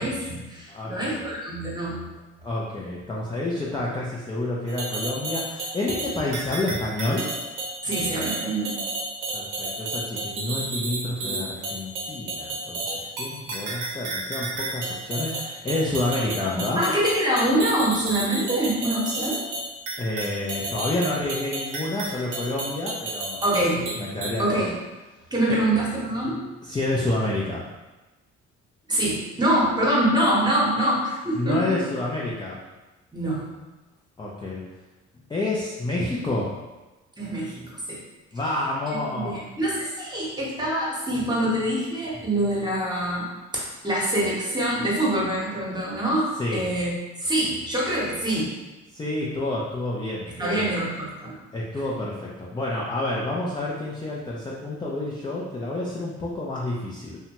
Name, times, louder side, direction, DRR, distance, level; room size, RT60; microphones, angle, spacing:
voice 1, 0.0-2.0 7.8-8.8 16.8-19.4 23.4-24.1 24.4-24.8 25.3-26.4 28.9-31.8 33.1-33.5 37.2-37.6 37.9-38.0 38.9-43.3 43.8-48.5 50.3-51.3, right 1 dB, 15° right, -5 dB, 0.9 m, -25 dB
voice 2, 0.7-1.2 2.4-7.3 9.3-16.8 20.0-23.7 24.0-24.7 25.5-25.6 26.6-27.6 31.3-32.6 34.2-34.6 35.3-36.5 38.3-39.4 46.4-46.6 48.9-50.7 51.5-57.2, left 2 dB, 15° left, -5 dB, 0.4 m, -29 dB
sound 1, 4.7-24.3, right 2 dB, 90° right, 0.7 m, -32 dB
2.7 x 2.2 x 2.9 m, 1.1 s
cardioid pair, 90°, 30 cm